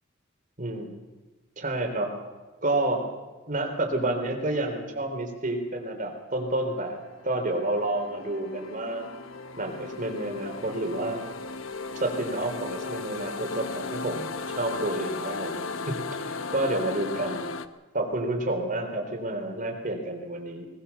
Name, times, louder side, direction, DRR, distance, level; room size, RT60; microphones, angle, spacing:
voice 1, 0.6-1.0 1.6-2.1 2.6-3.0 3.5-9.1 9.6-11.2 12.0-15.6 15.9-16.0 16.2-17.5 17.9-20.7, right 1 dB, 40° right, 4 dB, 3.5 m, -29 dB
sound 1, 6.9-17.7, left 4 dB, 85° left, 1.0 m, -36 dB
20.0 x 19.5 x 6.9 m, 1.2 s
head